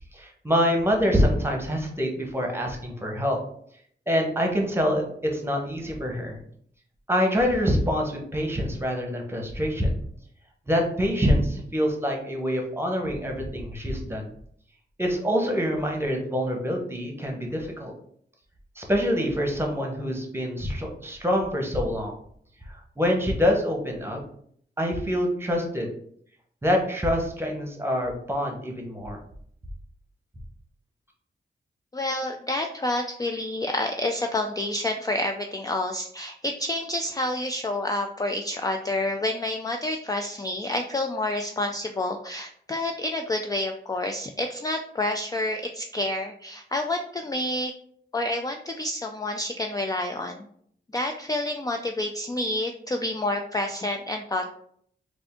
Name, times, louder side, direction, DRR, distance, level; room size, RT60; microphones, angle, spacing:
voice 1, 0.1-3.4 4.1-6.4 7.1-10.0 10.7-14.3 15.0-17.9 18.8-22.1 22.7-24.2 24.8-25.9 26.6-29.2, equal, 10° right, 1 dB, 1.0 m, -25 dB
voice 2, 31.9-47.7 48.1-50.4 50.9-54.5, left 1 dB, 20° left, 4 dB, 0.3 m, -28 dB
3.5 x 2.5 x 3.5 m, 0.64 s
cardioid pair, 65°, 20 cm